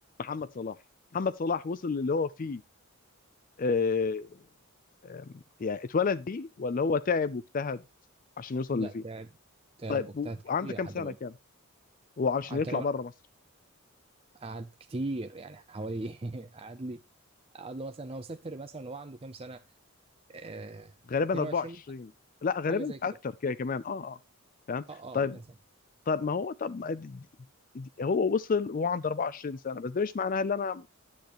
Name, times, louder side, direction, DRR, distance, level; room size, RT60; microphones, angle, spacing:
voice 1, 0.2-0.8 1.1-2.6 3.6-4.3 5.0-5.3 5.6-7.8 8.4-9.0 9.9-11.3 12.2-13.1 21.1-22.1 22.4-23.1 23.4-24.2 24.7-24.8 25.1-25.4 26.1-27.3 27.7-30.9, left 5 dB, 35° left, 0.4 m, -30 dB
voice 2, 8.7-9.3 9.8-11.2 12.5-12.9 14.3-17.0 17.5-19.6 20.3-21.0 21.3-21.8 22.7-23.0 24.9-25.4, right 2 dB, 25° right, 0.5 m, -39 dB
10.5 x 8.5 x 3.0 m
head